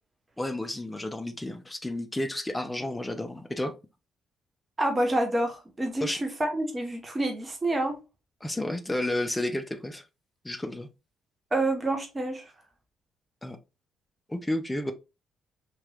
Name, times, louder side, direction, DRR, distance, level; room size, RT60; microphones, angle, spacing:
voice 1, 0.4-3.7 6.0-6.2 8.4-10.0 10.4-10.9 13.4-13.6 14.3-14.9, left 1 dB, 10° left, 0.5 m, -31 dB
voice 2, 4.8-8.0 11.5-12.4, right 1 dB, 20° right, 0.8 m, -28 dB
3.1 x 2.9 x 2.3 m
cardioid pair, 90°, 0 cm